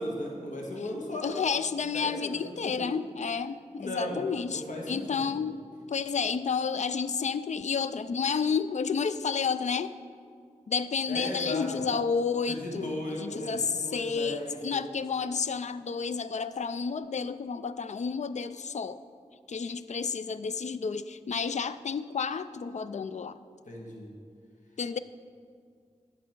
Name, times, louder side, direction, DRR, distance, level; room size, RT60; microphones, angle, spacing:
voice 1, 0.0-1.4 1.9-2.9 3.8-5.4 11.1-11.7 12.5-14.9 23.7-24.1, left 1 dB, 85° left, -1 dB, 1.5 m, -36 dB
voice 2, 1.2-5.6 5.9-9.9 10.7-12.9 13.2-19.0 19.5-23.3 24.8-25.0, left 5 dB, 65° left, 13 dB, 0.4 m, -31 dB
10.5 x 7.1 x 4.5 m, 2.1 s
wide cardioid pair, 90°, 13 cm